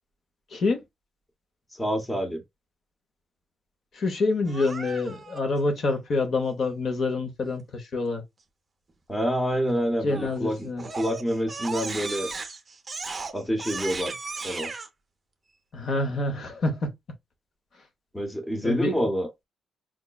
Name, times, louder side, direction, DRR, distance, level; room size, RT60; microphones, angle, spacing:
voice 1, 0.5-0.8 3.9-8.2 10.0-10.9 15.7-16.9 18.6-19.0, left 3 dB, 50° left, 0.7 m, -27 dB
voice 2, 1.7-2.4 9.1-10.7 11.0-12.3 13.3-14.2 14.4-14.7 18.1-19.3, equal, 10° left, 0.8 m, -27 dB
Crying sobbing, 4.5-5.4 10.1-10.4 10.8-14.9, right 4 dB, 25° right, 0.6 m, -36 dB
4.6 x 2.1 x 2.2 m
cardioid pair, 145°, 0 cm